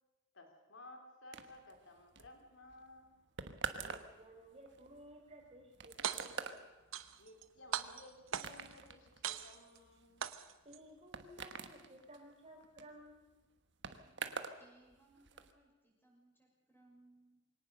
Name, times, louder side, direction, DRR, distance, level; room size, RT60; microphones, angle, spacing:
voice 1, 0.3-3.2 7.2-10.4, left 2 dB, 70° left, 4 dB, 4.0 m, -57 dB
sound 1, 1.3-14.6 14.9-15.5, right 5 dB, 60° right, 1.3 m, -47 dB
voice 2, 3.8-6.6 10.6-13.4, right 1 dB, 30° right, 1 dB, 4.4 m, -56 dB
sound 2, 5.9-6.5 6.9-7.4 7.7-8.7 9.2-9.8 10.2-10.8, right 8 dB, 90° right, 1.0 m, -40 dB
voice 3, 14.6-17.4, right 2 dB, 10° left, -1 dB, 6.4 m, -67 dB
23.5 x 18.0 x 6.6 m, 1.1 s
head